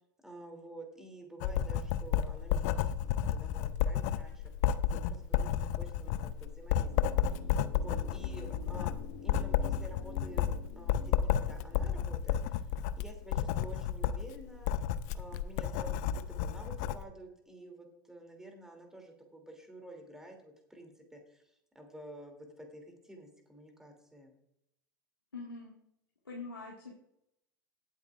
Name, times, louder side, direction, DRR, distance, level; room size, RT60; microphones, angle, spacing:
voice 1, 0.2-4.5 4.9-7.1 7.7-8.9 9.2-12.7 12.9-14.7 15.1-21.4 21.7-24.4, right 1 dB, 5° right, 2 dB, 2.9 m, -50 dB
Writing, 1.4-17.0, left 9 dB, 50° left, 0.6 m, -32 dB
sound 1, 6.8-12.8 13.0-13.1, left 4 dB, 70° left, 3.2 m, -50 dB
voice 2, 25.3-25.8 26.3-26.9, left 3 dB, 85° left, -3 dB, 1.9 m, -43 dB
17.5 x 8.2 x 2.5 m, 0.78 s
figure-of-eight pair, 85°, 11 cm